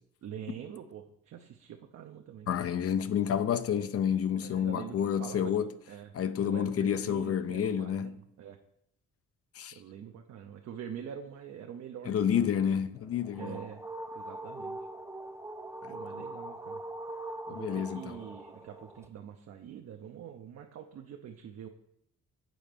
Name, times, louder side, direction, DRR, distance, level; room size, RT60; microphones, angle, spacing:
voice 1, 0.2-2.5 4.4-5.5 5.9-8.6 9.7-12.5 13.4-13.8 14.1-14.8 15.9-16.8 17.5-21.7, right 8 dB, 60° right, 0.7 m, -44 dB
voice 2, 2.5-5.7 6.1-8.2 9.6-9.8 12.1-13.6 15.8-15.9 17.5-18.2, left 8 dB, 50° left, 0.6 m, -29 dB
sound 1, 13.0-19.1, right 1 dB, 10° right, 0.6 m, -42 dB
7.8 x 4.1 x 5.1 m
cardioid pair, 90°, 30 cm